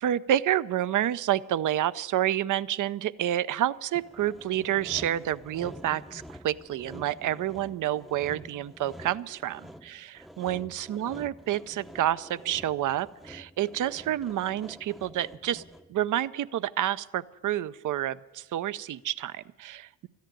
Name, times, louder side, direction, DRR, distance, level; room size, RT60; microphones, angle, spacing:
voice 1, 0.0-15.6 15.9-20.1, right 12 dB, 60° right, 17 dB, 0.6 m, -29 dB
Sawing, 4.0-16.0, equal, ahead, 0.6 m, -47 dB
13.5 x 10.5 x 8.9 m, 1.1 s
cardioid pair, 65°, 35 cm